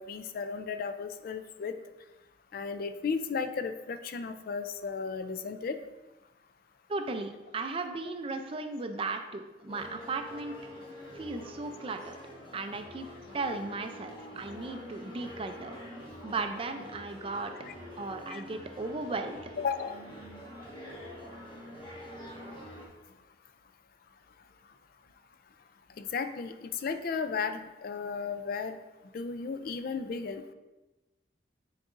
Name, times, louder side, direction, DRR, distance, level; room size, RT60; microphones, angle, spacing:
voice 1, 0.0-1.7 2.5-5.8 18.3-18.4 19.6-20.0 26.0-28.8 29.1-30.5, left 5 dB, 50° left, 9 dB, 0.4 m, -34 dB
voice 2, 6.9-10.5 11.1-12.2 12.5-13.1 13.3-15.7 16.2-17.5 18.0-19.4, right 3 dB, 30° right, 7 dB, 0.4 m, -36 dB
sound 1, 9.7-22.9, equal, 25° left, 1.2 m, -46 dB
9.6 x 3.9 x 2.5 m, 1.1 s
head